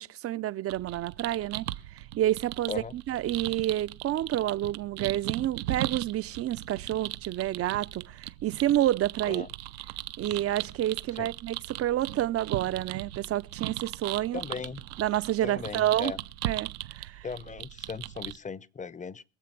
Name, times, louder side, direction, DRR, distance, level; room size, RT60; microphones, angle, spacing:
voice 1, 0.0-9.5 10.2-14.4 15.0-16.1 16.4-17.2, right 13 dB, 50° right, 0.6 m, -29 dB
sound 1, 0.7-18.4, right 15 dB, 85° right, 0.8 m, -38 dB
voice 2, 14.3-14.8 15.4-16.2 17.2-19.2, left 5 dB, 25° left, 0.8 m, -37 dB
22.0 x 7.5 x 6.0 m
supercardioid pair, 75°, 31 cm